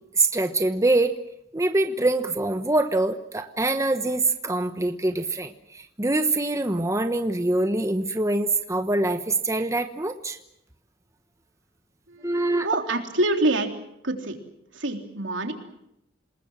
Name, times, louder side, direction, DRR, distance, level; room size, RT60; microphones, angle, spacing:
voice 1, 0.1-1.1 1.5-10.4 12.2-12.7, right 2 dB, 15° right, 8 dB, 1.0 m, -24 dB
voice 2, 12.1-13.7 14.0-14.4 14.7-15.5, right 2 dB, 75° right, 4 dB, 3.6 m, -26 dB
27.5 x 20.5 x 7.4 m, 0.79 s
head